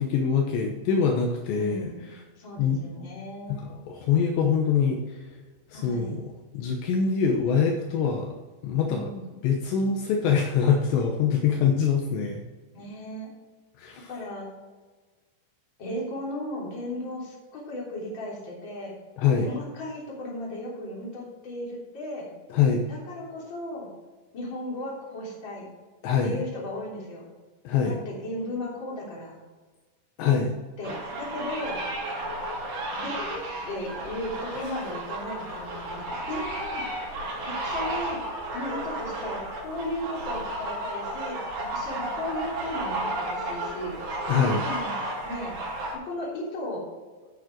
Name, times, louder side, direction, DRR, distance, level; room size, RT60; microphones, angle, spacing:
voice 1, 0.0-1.9 2.6-2.8 3.5-5.3 5.7-6.2 6.5-8.4 8.6-9.1 9.4-12.4 13.8-14.1 19.2-19.5 22.5-22.8 26.0-26.5 27.6-28.0 30.2-30.6 44.3-44.6, left 6 dB, 75° left, 2 dB, 3.0 m, -24 dB
voice 2, 1.5-3.7 5.7-6.2 8.8-9.4 12.7-13.3 14.1-14.5 15.8-18.9 19.4-22.3 22.9-23.9 24.3-25.7 26.2-27.3 27.8-29.3 30.8-31.8 33.0-37.1 37.4-38.2 38.5-44.0 44.6-45.0 45.2-45.6 46.0-46.8, left 1 dB, 30° left, -4 dB, 3.3 m, -36 dB
sound 1, 30.8-45.9, right 1 dB, 65° right, 5.0 m, -33 dB
9.4 x 9.0 x 4.5 m, 1.3 s
omnidirectional pair, 5.3 m